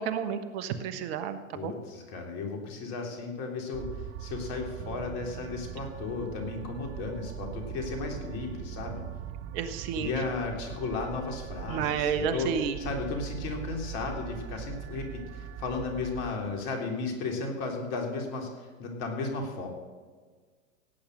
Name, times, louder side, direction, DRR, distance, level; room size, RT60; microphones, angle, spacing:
voice 1, 0.0-1.7 9.5-10.1 11.7-12.8, right 7 dB, 45° right, 10 dB, 1.3 m, -31 dB
voice 2, 1.5-9.0 9.9-19.7, left 4 dB, 45° left, 3 dB, 3.5 m, -34 dB
sound 1, 3.7-16.3, right 9 dB, 30° right, 0.7 m, -41 dB
17.0 x 8.9 x 6.4 m, 1.5 s
hypercardioid pair, 110°, 41 cm